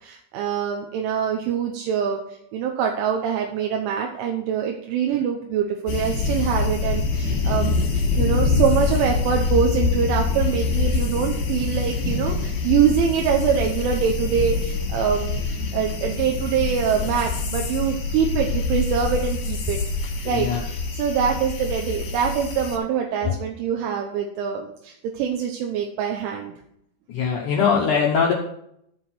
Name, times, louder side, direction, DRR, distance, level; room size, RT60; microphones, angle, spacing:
voice 1, 0.0-26.5, right 7 dB, 85° right, 1 dB, 3.5 m, -24 dB
sound 1, 5.9-22.8, left 4 dB, 50° left, 3.0 m, -25 dB
voice 2, 20.2-20.7 23.2-23.3 27.1-28.3, left 6 dB, 80° left, -2 dB, 1.7 m, -22 dB
14.0 x 5.3 x 6.1 m, 0.74 s
omnidirectional pair, 5.5 m